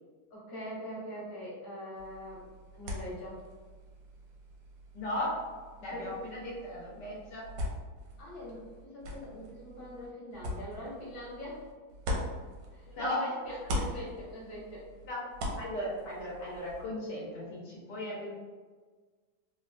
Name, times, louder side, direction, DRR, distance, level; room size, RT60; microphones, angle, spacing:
voice 1, 0.3-2.4 2.7-3.4 5.9-6.1 8.2-11.6 12.7-14.9, equal, 45° left, -7 dB, 1.4 m, -42 dB
sound 1, 2.0-13.1 13.4-16.9, left 1 dB, 90° right, 1.3 m, -41 dB
voice 2, 4.9-5.4 5.8-7.5 9.3-9.4 12.9-13.3 15.0-15.2 15.6-18.3, left 1 dB, 75° left, -5 dB, 1.3 m, -36 dB
3.6 x 2.1 x 2.4 m, 1.4 s
omnidirectional pair, 1.9 m